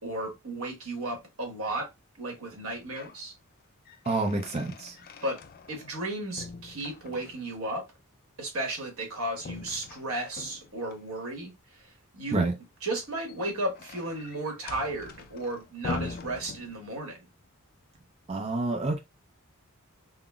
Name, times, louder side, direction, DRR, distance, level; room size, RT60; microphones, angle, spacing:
voice 1, 0.0-1.9 2.2-3.3 5.2-5.4 5.7-7.8 8.4-11.5 12.1-12.5 12.8-17.2, right 1 dB, 90° right, 1.3 m, -34 dB
sound 1, 2.6-3.2 3.6-6.0 6.4-7.6 9.4-11.0 13.0-17.2, left 3 dB, 45° left, 0.3 m, -42 dB
voice 2, 4.1-5.0 12.3-12.5 18.3-19.0, right 2 dB, 30° right, 0.4 m, -28 dB
3.7 x 2.0 x 2.3 m
head